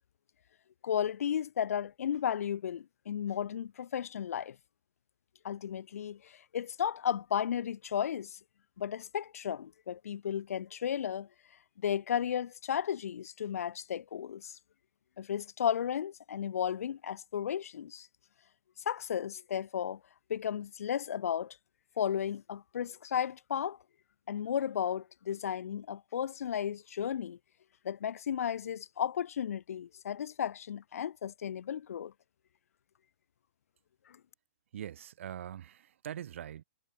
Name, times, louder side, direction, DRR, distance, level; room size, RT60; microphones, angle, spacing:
voice 1, 0.8-4.6 5.4-8.4 8.8-11.3 11.8-14.6 15.2-18.1 18.9-20.0 20.3-21.6 22.0-23.8 24.3-27.4 27.8-32.1, left 9 dB, 65° left, 0.9 m, -34 dB
voice 2, 34.7-36.6, right 10 dB, 55° right, 5.5 m, -42 dB
hypercardioid pair, 170°, 8 cm